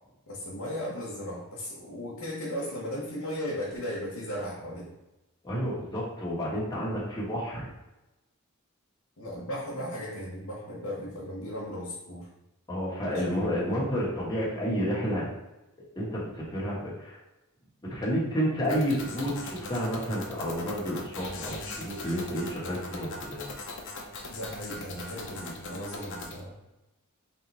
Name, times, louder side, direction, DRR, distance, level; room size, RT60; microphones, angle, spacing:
voice 1, 0.3-4.9 9.2-12.3 13.1-13.4 24.3-26.6, equal, 80° left, -5 dB, 1.1 m, -36 dB
voice 2, 5.4-7.7 12.7-15.3 16.0-17.2 17.8-23.5, equal, 20° left, -6 dB, 1.3 m, -30 dB
sound 1, 18.6-26.4, left 2 dB, 55° left, 0.7 m, -40 dB
3.7 x 2.9 x 4.1 m, 0.99 s
head